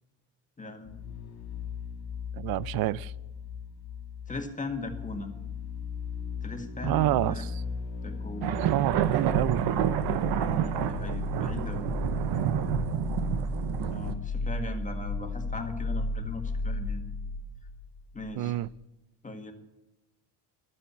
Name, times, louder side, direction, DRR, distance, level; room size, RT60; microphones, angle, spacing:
voice 1, 0.6-1.0 4.3-5.3 6.4-7.5 8.0-8.6 10.3-11.9 13.9-17.0 18.1-18.6 19.2-19.5, left 2 dB, 20° left, 1.8 m, -38 dB
sound 1, 0.8-18.4 18.6-18.7, left 3 dB, 75° left, 2.5 m, -35 dB
voice 2, 2.4-3.1 6.8-7.6 8.7-9.7 18.4-18.7, right 15 dB, 65° right, 0.5 m, -28 dB
sound 2, 8.4-14.1, right 11 dB, 85° right, 0.9 m, -29 dB
12.5 x 8.6 x 8.5 m
cardioid pair, 125°, 40 cm